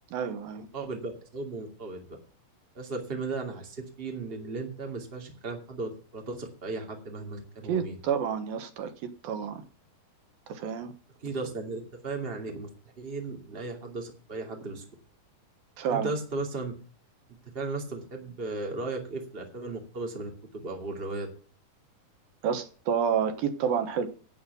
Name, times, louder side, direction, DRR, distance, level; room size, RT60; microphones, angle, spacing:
voice 1, 0.1-0.7 7.7-9.7 10.5-10.9 15.8-16.1 22.4-24.1, right 7 dB, 75° right, 2.9 m, -29 dB
voice 2, 0.7-2.1 2.7-8.0 11.2-12.7 13.0-14.8 15.9-16.7 17.5-21.3, right 3 dB, 20° right, 2.2 m, -36 dB
10.5 x 8.7 x 6.8 m
omnidirectional pair, 4.2 m